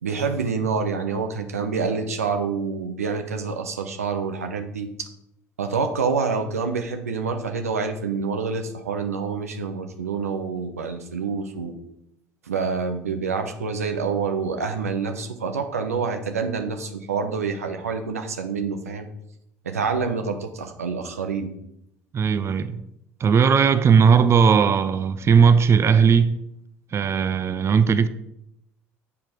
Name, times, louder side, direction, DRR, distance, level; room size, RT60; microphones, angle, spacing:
voice 1, 0.0-5.1 5.6-11.7 12.5-19.1 19.6-21.5, right 5 dB, 85° right, 0.7 m, -27 dB
voice 2, 22.1-22.8 23.2-26.4 26.9-28.1, right 6 dB, 35° right, 0.5 m, -17 dB
7.4 x 4.6 x 5.0 m
hypercardioid pair, 60°, 8 cm